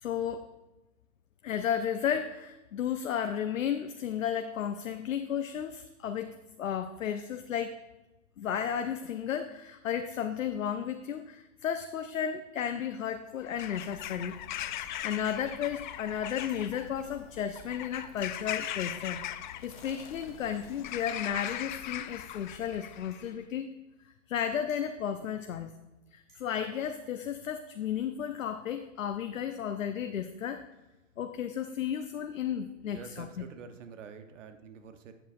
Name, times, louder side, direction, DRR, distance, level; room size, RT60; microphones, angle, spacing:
voice 1, 0.0-0.5 1.4-7.8 8.4-14.4 15.0-23.7 24.0-25.7 26.1-30.6 31.2-33.4, left 8 dB, 80° left, 7 dB, 0.7 m, -33 dB
Bird vocalization bird call bird song / Crow, 13.4-23.3, left 12 dB, 40° left, 0.4 m, -40 dB
sound 1, 14.8-15.2 16.5-16.7 18.2-18.5 19.8-20.0 21.5-21.8 23.1-23.3 24.7-25.1 26.3-26.6, right 2 dB, 25° right, 2.6 m, -63 dB
voice 2, 32.8-35.1, right 6 dB, 65° right, 7 dB, 1.1 m, -47 dB
11.0 x 8.0 x 2.6 m, 1.1 s
hypercardioid pair, 125°, 39 cm